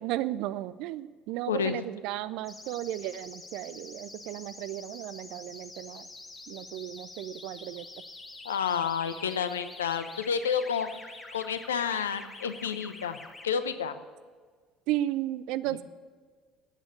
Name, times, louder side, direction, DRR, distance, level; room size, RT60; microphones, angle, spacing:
voice 1, 0.0-6.1 6.5-7.9 14.9-15.8, right 14 dB, 60° right, 15 dB, 0.5 m, -34 dB
sound 1, 2.4-13.5, left 2 dB, 20° left, 1.6 m, -46 dB
voice 2, 8.4-10.9 11.3-13.2 13.4-13.9, left 7 dB, 75° left, 12 dB, 0.7 m, -30 dB
14.5 x 8.8 x 6.8 m, 1.5 s
figure-of-eight pair, 60°, 0 cm